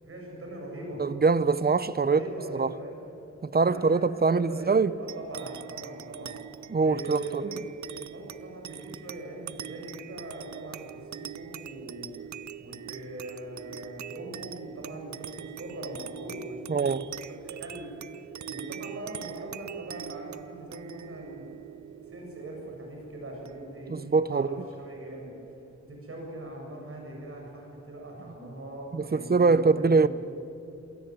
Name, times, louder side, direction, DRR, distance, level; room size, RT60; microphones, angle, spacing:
voice 1, 0.0-1.0 2.0-2.9 3.6-6.4 6.8-12.1 12.6-17.1 17.4-17.9 18.5-21.5 21.9-24.5 24.8-25.3 25.8-30.1, right 1 dB, 50° right, 7.6 m, -41 dB
voice 2, 1.0-2.2 2.5-2.7 3.4-4.9 6.7-7.6 16.7-17.1 23.9-24.6 28.9-30.1, right 4 dB, 35° right, 0.7 m, -23 dB
sound 1, 5.1-23.9, right 9 dB, 70° right, 0.6 m, -43 dB
27.5 x 17.5 x 9.5 m
wide cardioid pair, 140°, 29 cm